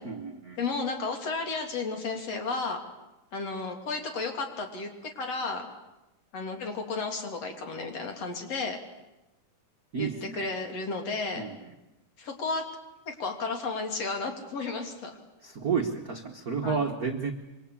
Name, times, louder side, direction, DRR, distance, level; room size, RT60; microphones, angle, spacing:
voice 1, 0.0-0.6 9.9-10.5 11.3-11.7 15.4-17.3, right 5 dB, 45° right, 3 dB, 1.2 m, -31 dB
voice 2, 0.6-2.8 3.3-5.7 6.3-8.8 10.0-11.5 12.2-12.7 13.1-15.2 16.6-16.9, left 3 dB, 55° left, 4 dB, 3.8 m, -33 dB
26.0 x 25.0 x 8.6 m, 0.97 s
omnidirectional pair, 3.5 m